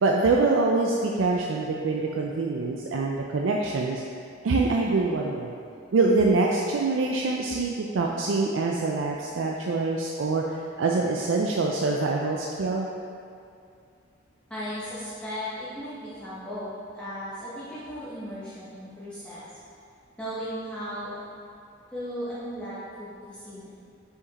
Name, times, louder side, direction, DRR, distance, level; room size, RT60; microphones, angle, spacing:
voice 1, 0.0-4.0 4.4-5.5 5.9-12.9, right 3 dB, 80° right, -1 dB, 0.4 m, -25 dB
voice 2, 14.5-19.5 20.2-21.1 21.9-23.7, equal, 5° left, -12 dB, 1.0 m, -36 dB
5.2 x 5.0 x 4.0 m, 2.5 s
head